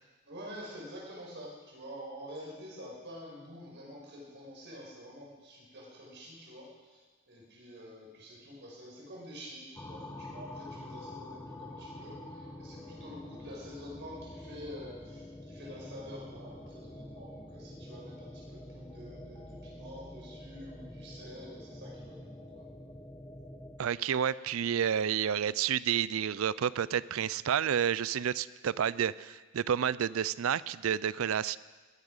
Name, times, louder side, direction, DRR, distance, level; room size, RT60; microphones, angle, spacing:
voice 1, 0.2-7.0 7.3-22.7, equal, 55° right, -3 dB, 5.4 m, -47 dB
sound 1, 9.8-23.8, left 1 dB, 15° left, 1.1 m, -47 dB
voice 2, 23.8-31.6, right 8 dB, 70° right, 19 dB, 0.4 m, -30 dB
20.5 x 10.0 x 5.5 m, 1.3 s
head